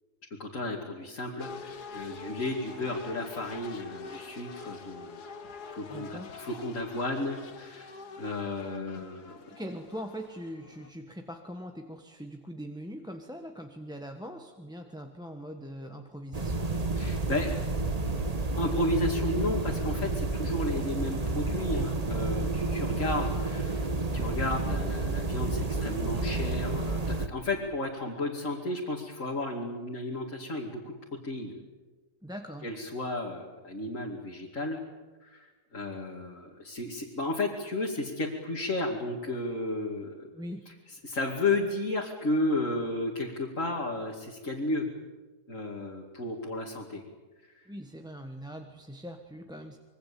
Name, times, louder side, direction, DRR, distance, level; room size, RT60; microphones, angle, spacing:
voice 1, 0.4-5.2 5.7-9.6 17.0-17.6 18.6-30.9 31.2-31.5 32.6-34.8 35.2-40.3 41.0-44.9 45.5-47.0, left 2 dB, 55° left, -2 dB, 2.9 m, -33 dB
sound 1, 1.4-10.9, left 4 dB, 85° left, 2.1 m, -45 dB
voice 2, 5.9-6.3 9.5-16.7 32.2-32.7 40.3-40.6 47.7-49.8, equal, 5° right, 4 dB, 1.3 m, -41 dB
sound 2, 16.3-27.3, right 2 dB, 25° right, 1.4 m, -30 dB
26.0 x 23.0 x 8.5 m, 1.3 s
omnidirectional pair, 1.7 m